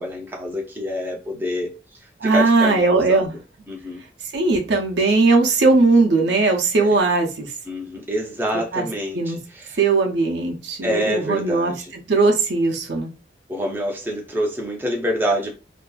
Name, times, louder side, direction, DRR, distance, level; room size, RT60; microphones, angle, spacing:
voice 1, 0.0-1.7 2.0-3.4 3.7-4.0 6.8-6.9 7.7-9.8 10.8-11.9 13.5-15.5, equal, 10° right, 0.4 m, -27 dB
voice 2, 2.2-3.4 4.3-7.5 8.7-8.9 9.1-9.4 9.8-13.1, right 3 dB, 80° right, 0.6 m, -19 dB
2.6 x 2.3 x 2.2 m
head